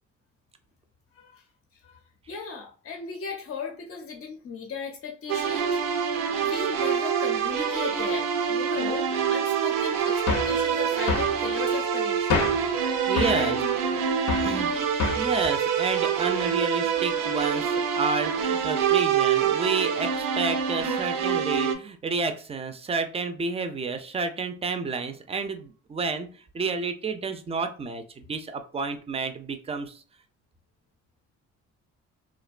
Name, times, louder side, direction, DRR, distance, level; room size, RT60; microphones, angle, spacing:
voice 1, 2.3-12.6 13.2-13.6 14.3-14.7, left 5 dB, 45° left, 2 dB, 0.5 m, -37 dB
sound 1, 5.3-21.8, right 7 dB, 90° right, 0.5 m, -26 dB
sound 2, 10.3-10.6 11.1-11.4 12.3-12.7 13.2-13.4 14.3-14.6 15.0-15.3, left 4 dB, 90° left, 0.6 m, -27 dB
voice 2, 12.8-13.6 14.4-14.7 15.2-26.3 26.5-30.0, right 4 dB, 20° right, 8 dB, 0.3 m, -30 dB
2.5 x 2.1 x 2.3 m, 0.39 s
cardioid pair, 90°, 30 cm